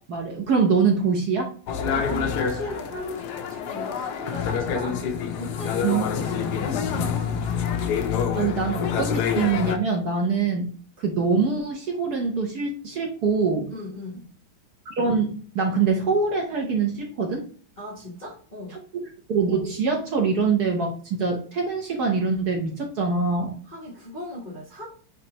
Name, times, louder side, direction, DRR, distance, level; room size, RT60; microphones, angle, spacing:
voice 1, 0.1-1.5 5.8-6.1 8.3-10.7 11.0-13.7 14.9-17.4 19.3-23.5, right 5 dB, 55° right, 1 dB, 1.2 m, -24 dB
sound 1, 1.7-9.8, left 7 dB, 75° left, 0.9 m, -27 dB
voice 2, 1.8-5.0 5.4-7.7 10.3-10.5 13.7-14.3 17.8-18.8 23.7-24.9, left 1 dB, 35° left, -5 dB, 0.7 m, -37 dB
5.4 x 3.2 x 2.9 m, 0.43 s
omnidirectional pair, 2.3 m